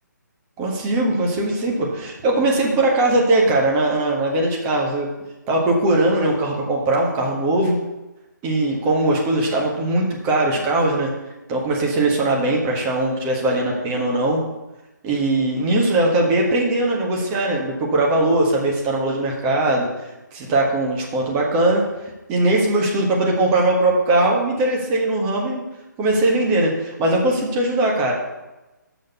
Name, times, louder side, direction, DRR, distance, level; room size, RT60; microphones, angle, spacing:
voice 1, 0.6-5.1 5.5-7.8 8.4-11.1 11.5-14.4 15.0-19.9 20.3-21.8 22.3-25.6 26.0-28.1, right 2 dB, 20° right, -1 dB, 1.6 m, -20 dB
6.8 x 6.4 x 6.9 m, 1.1 s
figure-of-eight pair, 145°, 11 cm